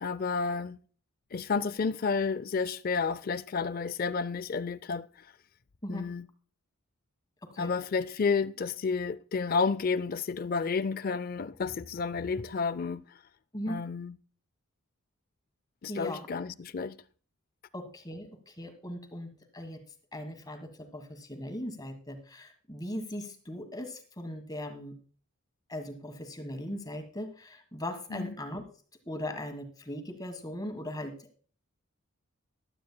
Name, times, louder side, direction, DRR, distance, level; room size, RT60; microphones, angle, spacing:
voice 1, 0.0-0.8 1.3-5.3 5.9-6.3 7.6-13.0 13.7-14.2 15.8-17.0 28.1-28.3, left 5 dB, 40° left, 0.4 m, -31 dB
voice 2, 7.4-7.7 13.5-13.8 15.9-16.3 17.7-19.8 20.1-25.0 25.7-28.6 29.1-31.3, left 1 dB, 15° left, 1.4 m, -39 dB
15.5 x 11.5 x 2.2 m
head